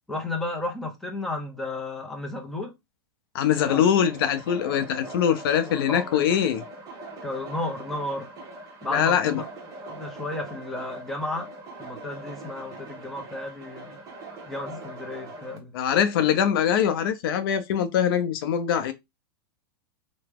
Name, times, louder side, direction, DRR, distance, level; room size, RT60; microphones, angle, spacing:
voice 1, 0.1-2.7 3.7-3.9 4.7-4.9 5.7-6.4 7.2-8.3 8.8-9.4 9.9-11.5 11.8-14.0 14.5-15.8, left 2 dB, ahead, 0.5 m, -33 dB
voice 2, 3.3-6.6 8.9-9.4 15.7-18.9, left 9 dB, 65° left, 0.5 m, -23 dB
sound 1, 3.6-15.6, right 2 dB, 25° right, 0.9 m, -42 dB
2.9 x 2.1 x 3.4 m
supercardioid pair, 145°, 13 cm